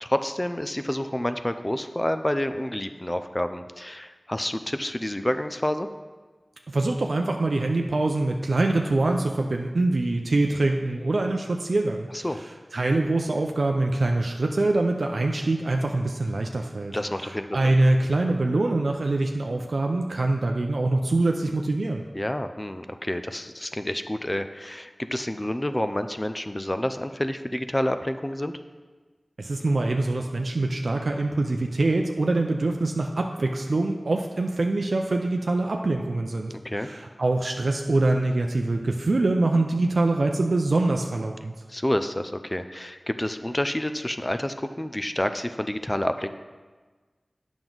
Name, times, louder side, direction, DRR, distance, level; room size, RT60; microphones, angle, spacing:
voice 1, 0.0-5.9 12.2-12.4 16.9-17.7 22.1-28.5 36.5-36.9 41.7-46.3, left 1 dB, 20° left, 9 dB, 0.4 m, -29 dB
voice 2, 6.7-12.5 12.7-22.0 29.4-41.5, right 2 dB, 75° right, 2 dB, 0.5 m, -24 dB
8.9 x 6.0 x 3.9 m, 1.3 s
wide cardioid pair, 65°, 0 cm